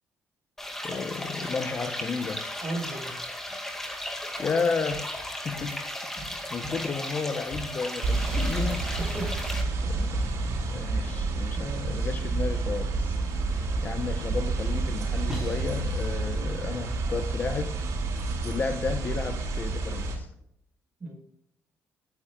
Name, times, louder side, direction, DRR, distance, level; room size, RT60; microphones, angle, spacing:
sound 1, 0.6-9.6, left 1 dB, 5° left, 2.1 m, -35 dB
voice 1, 0.8-2.4 4.4-5.8 6.0-8.9 9.8-10.2 10.7-17.8 18.4-20.3, left 5 dB, 35° left, 7 dB, 0.9 m, -33 dB
voice 2, 2.6-3.1 5.4-5.7 9.0-9.4 10.9-11.1 11.5-12.1 16.2-16.6 21.0-21.2, right 2 dB, 25° right, 1 dB, 5.2 m, -37 dB
sound 2, 3.3-15.6, right 1 dB, 10° right, 4.4 m, -48 dB
sound 3, 8.0-20.2, right 3 dB, 70° right, 4.3 m, -29 dB
19.5 x 9.7 x 2.4 m, 0.73 s
cardioid pair, 135°, 5 cm